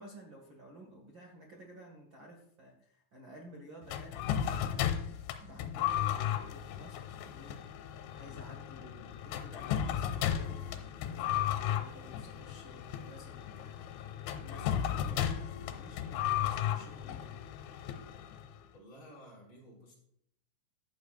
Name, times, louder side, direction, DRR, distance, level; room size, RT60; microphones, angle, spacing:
voice 1, 0.0-4.9 5.4-7.6 8.1-13.8 14.4-17.4, right 1 dB, 60° right, 0 dB, 1.2 m, -53 dB
sound 1, 3.9-18.6, left 10 dB, 90° left, 3.3 m, -35 dB
voice 2, 18.7-19.9, equal, 25° left, -5 dB, 5.9 m, -53 dB
15.0 x 11.5 x 2.5 m, 0.73 s
omnidirectional pair, 5.3 m